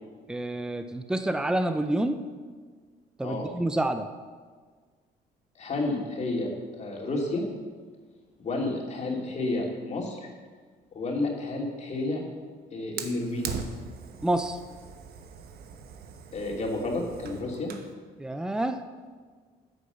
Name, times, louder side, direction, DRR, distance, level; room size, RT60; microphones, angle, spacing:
voice 1, 0.3-2.2 3.2-4.1 14.2-14.6 18.2-18.8, right 1 dB, 5° right, 9 dB, 0.6 m, -28 dB
voice 2, 5.6-6.5 6.8-7.4 8.4-10.3 10.9-12.2 12.7-13.6 16.3-17.7, left 2 dB, 40° left, 0 dB, 2.9 m, -30 dB
Fire, 13.0-17.9, right 6 dB, 65° right, 1.2 m, -40 dB
9.7 x 9.3 x 7.0 m, 1.5 s
cardioid pair, 110°, 17 cm